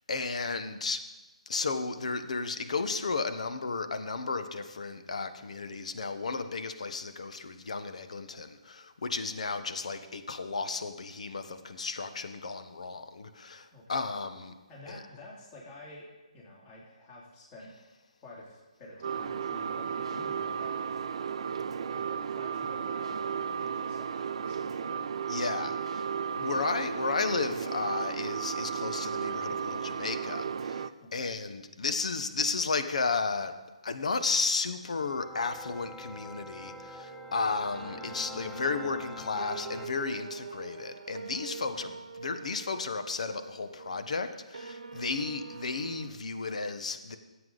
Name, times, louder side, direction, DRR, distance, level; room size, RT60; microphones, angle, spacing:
voice 1, 0.1-1.0 1.5-14.5 14.9-15.0 25.3-26.1 26.4-33.5 33.8-41.9 42.2-47.2, left 4 dB, 70° left, 9 dB, 1.0 m, -33 dB
voice 2, 13.7-14.1 14.7-16.1 16.3-17.7 18.2-20.9 21.8-25.0 26.4-26.6 31.0-31.3 41.8-42.0, left 1 dB, 25° left, -4 dB, 2.7 m, -49 dB
sound 1, 19.0-30.9, right 7 dB, 55° right, 0.5 m, -34 dB
sound 2, 34.9-39.9, left 1 dB, 5° left, 0.4 m, -46 dB
sound 3, 36.6-46.1, right 5 dB, 85° right, 1.0 m, -45 dB
15.5 x 8.1 x 3.9 m, 1.1 s
hypercardioid pair, 150°, 4 cm